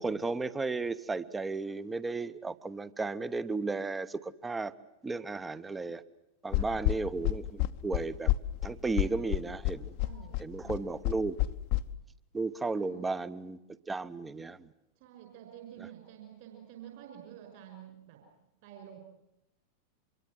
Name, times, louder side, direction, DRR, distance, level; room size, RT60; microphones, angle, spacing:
voice 1, 0.0-4.7 5.0-6.0 6.4-8.3 8.6-9.9 10.4-11.4 12.3-13.6 13.9-14.7, right 3 dB, 10° right, 16 dB, 0.9 m, -34 dB
sound 1, 6.5-11.8, left 17 dB, 45° left, 0.9 m, -29 dB
voice 2, 10.0-10.9 12.7-13.0 15.0-18.2 18.6-19.0, right 10 dB, 50° right, 3 dB, 5.8 m, -50 dB
25.5 x 23.0 x 7.7 m, 0.86 s
figure-of-eight pair, 90°, 0 cm